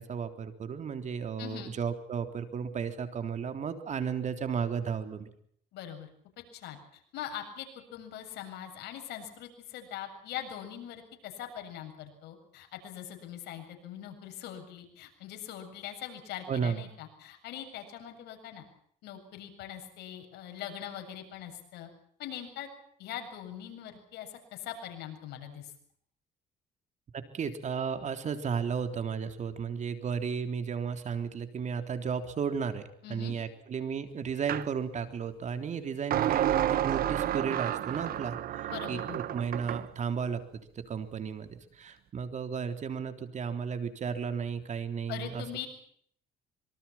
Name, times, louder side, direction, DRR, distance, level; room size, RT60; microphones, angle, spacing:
voice 1, 0.0-5.3 16.5-16.8 27.1-32.8 33.1-40.4 40.8-45.4, right 6 dB, 45° right, 8 dB, 3.6 m, -34 dB
voice 2, 1.4-1.7 5.7-6.1 6.5-7.7 7.9-18.6 19.0-21.9 22.2-22.7 23.0-25.7 33.0-33.3 38.7-39.2 45.1-45.7, left 10 dB, 80° left, 5 dB, 7.5 m, -42 dB
sound 1, 34.5-34.7 36.1-39.9, right 12 dB, 60° right, 1.2 m, -30 dB
26.0 x 24.5 x 5.9 m, 0.64 s
cardioid pair, 110°, 17 cm